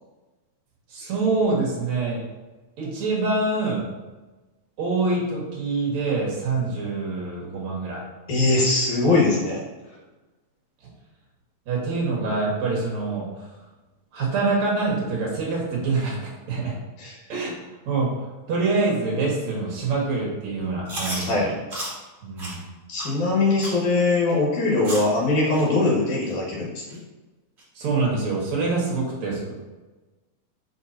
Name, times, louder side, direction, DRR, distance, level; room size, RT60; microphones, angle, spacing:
voice 1, 0.9-2.2 2.8-3.8 4.8-8.0 11.7-13.4 14.1-16.7 17.3-17.6 17.9-21.5 22.2-22.6 27.7-29.6, right 3 dB, 65° right, -3 dB, 2.9 m, -25 dB
voice 2, 8.3-9.6 17.0-17.1 21.3-21.5 22.9-26.8, left 3 dB, 80° left, -4 dB, 3.2 m, -21 dB
Chewing mastication, 20.9-21.3 21.7-21.9 22.4-22.5 23.0-23.1 23.6-23.8 24.3-24.4 24.8-25.1 25.5-25.6 26.2-26.3 26.9-27.0 27.6-27.7, right 1 dB, 25° right, 2.0 m, -32 dB
6.5 x 6.1 x 2.9 m, 1.2 s
omnidirectional pair, 3.4 m